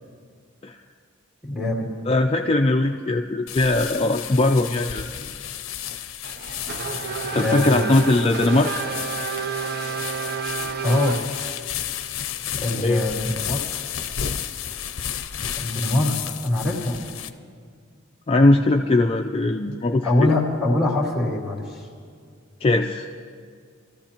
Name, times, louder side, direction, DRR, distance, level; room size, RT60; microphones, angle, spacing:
voice 1, 1.4-1.9 7.3-7.8 10.8-11.1 12.6-13.6 15.6-16.2 16.4-17.0 20.0-21.9, left 1 dB, ahead, -5 dB, 2.6 m, -23 dB
voice 2, 2.1-5.3 7.3-8.8 12.7-13.1 18.3-20.3 22.6-23.1, left 2 dB, 25° left, 3 dB, 0.4 m, -20 dB
sound 1, 3.5-17.3, left 9 dB, 70° left, 0.6 m, -32 dB
Race car auto racing / Accelerating revving vroom, 6.2-11.7, right 6 dB, 50° right, 0.5 m, -30 dB
26.5 x 14.5 x 2.9 m, 2.1 s
head